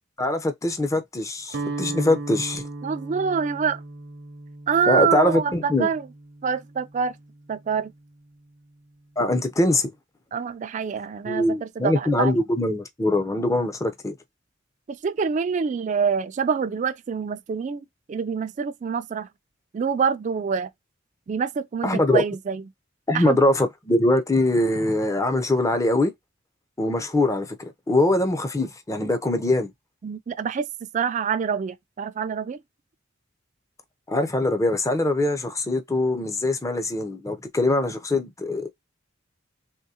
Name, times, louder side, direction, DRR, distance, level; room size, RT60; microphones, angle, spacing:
voice 1, 0.2-2.6 4.9-5.9 9.2-9.9 11.3-14.1 21.8-22.2 23.1-26.1 26.8-29.7 34.1-38.7, left 1 dB, 15° left, 0.5 m, -23 dB
Guitar, 1.5-7.5, right 3 dB, 65° right, 0.6 m, -37 dB
voice 2, 2.8-3.8 4.7-6.1 6.4-7.2 7.5-7.9 10.3-12.4 14.9-19.3 19.7-20.7 21.3-22.6 23.1-23.4 30.0-32.6, right 6 dB, 40° right, 0.3 m, -26 dB
3.6 x 3.1 x 2.7 m
head